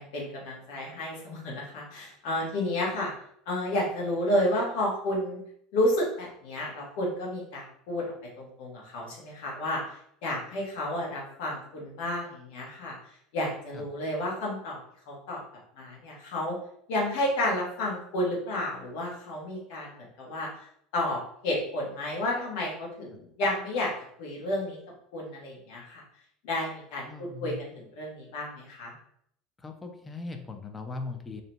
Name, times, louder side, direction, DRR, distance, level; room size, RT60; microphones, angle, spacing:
voice 1, 0.0-3.1 3.5-5.4 5.7-8.0 8.4-9.8 10.2-12.9 13.3-14.8 15.1-15.4 15.8-16.6 16.9-20.5 20.9-23.9 24.2-24.8 25.1-26.0 26.4-28.9, left 1 dB, 65° left, -2 dB, 0.9 m, -31 dB
voice 2, 27.1-27.6 29.6-31.4, left 3 dB, 20° left, 5 dB, 0.5 m, -39 dB
2.7 x 2.0 x 2.9 m, 0.69 s
hypercardioid pair, 75°, 0 cm